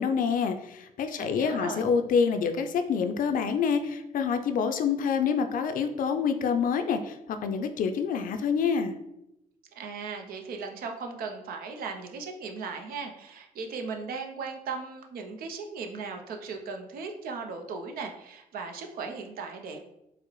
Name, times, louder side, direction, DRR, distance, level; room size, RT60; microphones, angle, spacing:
voice 1, 0.0-7.2 7.4-9.0, left 6 dB, 65° left, 7 dB, 0.4 m, -27 dB
voice 2, 1.2-1.8 9.7-19.8, right 4 dB, 80° right, 4 dB, 0.5 m, -37 dB
4.7 x 2.0 x 3.0 m, 0.85 s
cardioid pair, 80°, 15 cm